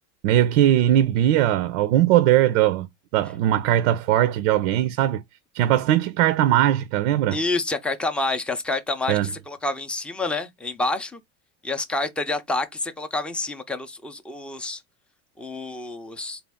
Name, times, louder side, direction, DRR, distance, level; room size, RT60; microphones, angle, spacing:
voice 1, 0.2-2.9 3.1-5.2 5.5-7.4 9.1-9.3, right 12 dB, 85° right, 0.6 m, -20 dB
voice 2, 7.3-11.2 11.6-14.8 15.4-16.4, left 2 dB, 5° left, 0.4 m, -28 dB
4.1 x 2.3 x 3.4 m
supercardioid pair, 120°, 39 cm